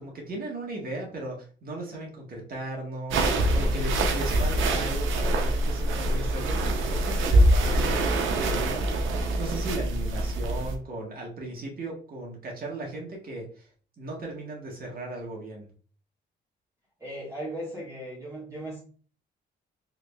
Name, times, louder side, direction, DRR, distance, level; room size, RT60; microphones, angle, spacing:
voice 1, 0.0-13.7 14.0-15.7, right 2 dB, 45° right, -1 dB, 1.4 m, -37 dB
sound 1, 3.1-10.8, right 1 dB, 80° right, 0.6 m, -24 dB
voice 2, 17.0-18.8, right 1 dB, 15° right, -6 dB, 1.4 m, -37 dB
3.8 x 3.2 x 2.3 m, 0.42 s
cardioid pair, 90°, 20 cm